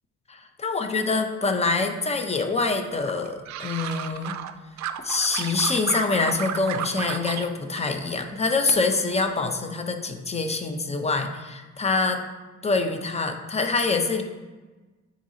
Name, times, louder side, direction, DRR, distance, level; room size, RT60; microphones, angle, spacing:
voice 1, 0.3-4.4 5.0-12.2 12.6-14.2, left 3 dB, 20° left, 6 dB, 0.7 m, -25 dB
sound 1, 3.0-4.5 4.8-7.5 7.8-8.5 8.8-9.3, right 10 dB, 65° right, 0.5 m, -33 dB
9.2 x 4.1 x 2.8 m, 1.2 s
cardioid pair, 90°, 30 cm